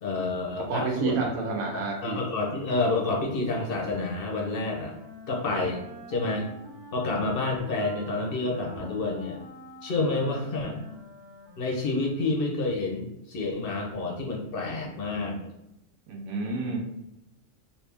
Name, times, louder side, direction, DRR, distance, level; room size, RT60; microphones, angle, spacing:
voice 1, 0.0-1.3 1.7-4.9 5.3-5.8 6.1-6.5 6.9-9.4 9.8-10.8 11.6-15.4, left 3 dB, 50° left, 0 dB, 0.8 m, -29 dB
voice 2, 0.7-2.2 16.1-16.8, right 4 dB, 90° right, 0 dB, 1.1 m, -29 dB
Wind instrument woodwind instrument, 3.8-12.5, left 1 dB, 45° right, 0.7 m, -46 dB
3.3 x 2.7 x 3.3 m, 0.87 s
omnidirectional pair, 1.5 m